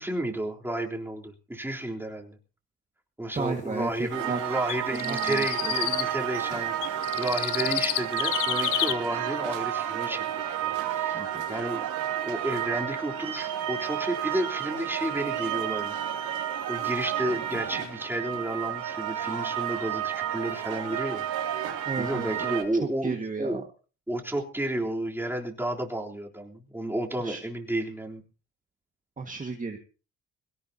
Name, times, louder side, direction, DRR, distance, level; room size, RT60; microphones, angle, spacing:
voice 1, 0.0-2.4 3.2-10.3 10.6-11.2 11.5-11.9 12.2-15.9 16.3-21.2 21.7-23.6 24.1-28.2, right 1 dB, 5° right, 0 dB, 3.6 m, -32 dB
voice 2, 3.3-4.4 5.0-5.7 11.1-11.4 21.8-23.7 27.2-27.4 29.2-29.8, right 4 dB, 25° right, 4 dB, 1.9 m, -34 dB
sound 1, 4.1-22.6, right 10 dB, 85° right, 2.9 m, -31 dB
sound 2, 4.7-6.1 6.8-8.9, left 14 dB, 85° left, 1.0 m, -29 dB
22.0 x 17.5 x 2.9 m, 0.35 s
cardioid pair, 90°, 30 cm